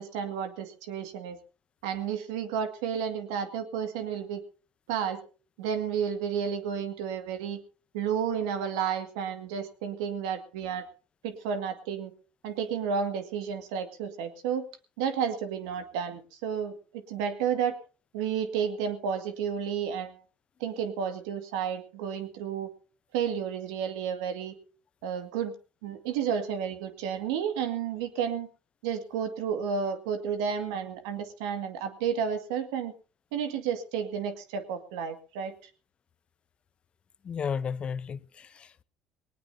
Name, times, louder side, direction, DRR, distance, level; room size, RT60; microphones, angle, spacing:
voice 1, 0.0-1.4 1.8-4.4 4.9-5.2 5.6-7.6 7.9-10.9 11.2-12.1 12.4-14.6 15.0-17.8 18.1-20.2 20.6-22.7 23.1-24.6 25.0-25.5 25.8-28.5 28.8-32.9 33.3-35.6, right 7 dB, 80° right, 2.0 m, -31 dB
voice 2, 37.2-38.8, left 6 dB, 40° left, 0.8 m, -34 dB
20.0 x 19.0 x 2.8 m
hypercardioid pair, 75°, 3 cm